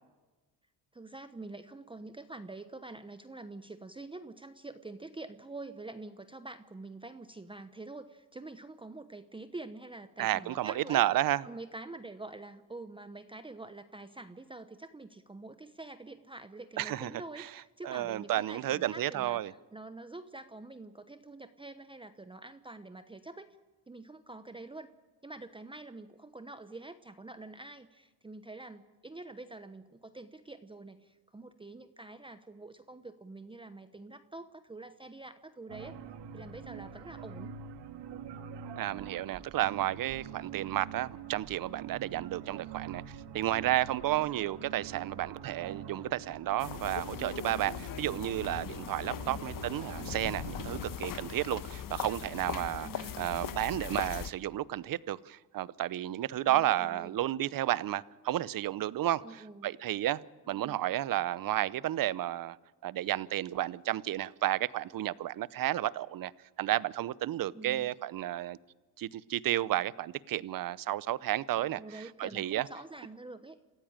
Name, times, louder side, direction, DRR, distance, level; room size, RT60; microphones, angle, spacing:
voice 1, 0.9-11.0 11.4-23.5 23.9-24.9 25.2-36.0 36.3-37.5 49.0-49.5 52.8-53.3 56.4-57.2 59.2-59.7 60.5-60.8 67.5-67.9 71.7-73.6, right 2 dB, 10° right, 1.0 m, -46 dB
voice 2, 10.2-11.4 16.8-17.1 17.4-17.5 17.8-19.5 38.8-43.0 43.3-60.2 60.5-62.6 62.8-66.3 66.6-68.6 69.0-72.7, right 13 dB, 50° right, 0.8 m, -32 dB
sound 1, 35.7-51.0, right 8 dB, 65° right, 2.0 m, -45 dB
sound 2, 46.6-54.3, left 9 dB, 45° left, 1.2 m, -40 dB
28.0 x 15.5 x 8.9 m
cardioid pair, 100°, 44 cm